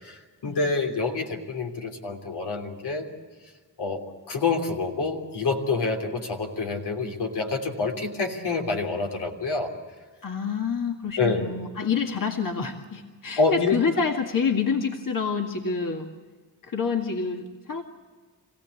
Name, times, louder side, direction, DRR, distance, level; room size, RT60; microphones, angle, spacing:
voice 1, 0.0-3.1 3.8-9.7 11.2-11.5 13.4-13.8, left 4 dB, 85° left, 2 dB, 3.3 m, -27 dB
voice 2, 10.2-16.1 16.7-17.8, left 5 dB, 55° left, 3 dB, 2.0 m, -27 dB
26.0 x 16.5 x 8.5 m, 1.5 s
cardioid pair, 70°, 39 cm